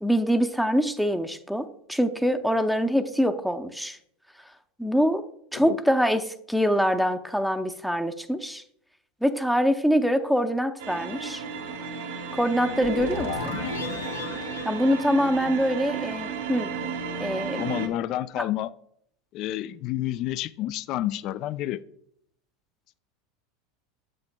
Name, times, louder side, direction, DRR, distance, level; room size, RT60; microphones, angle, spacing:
voice 1, 0.0-4.0 4.8-5.2 5.5-8.6 9.2-11.4 12.3-13.6 14.6-16.7 17.2-17.7 18.4-18.5, equal, ahead, 0.6 m, -24 dB
sound 1, 10.8-17.9, right 6 dB, 80° right, 1.3 m, -34 dB
sound 2, 12.6-15.9, left 4 dB, 85° left, 1.1 m, -34 dB
voice 2, 17.5-18.7 19.3-21.8, left 13 dB, 50° left, 0.3 m, -30 dB
8.5 x 7.6 x 2.2 m
hypercardioid pair, 85°, 0 cm